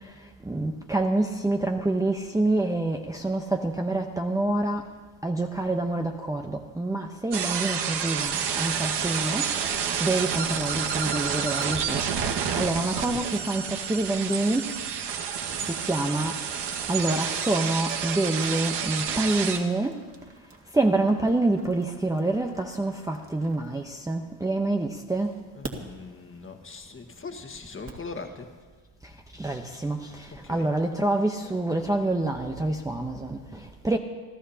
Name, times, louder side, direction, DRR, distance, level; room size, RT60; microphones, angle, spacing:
voice 1, 0.5-4.8 5.2-9.4 10.0-12.0 12.6-14.7 15.6-16.4 16.9-19.9 20.7-25.3 29.4-34.0, right 2 dB, 5° right, 2 dB, 0.9 m, -27 dB
sound 1, 7.3-19.6, right 7 dB, 55° right, 1.7 m, -29 dB
sound 2, 11.6-11.7 12.4-24.4 25.1-28.1, right 3 dB, 25° right, 2.2 m, -48 dB
voice 2, 25.5-28.5 30.3-30.7, left 4 dB, 25° left, 5 dB, 1.7 m, -40 dB
29.0 x 14.0 x 2.9 m, 1.4 s
supercardioid pair, 100°, 48 cm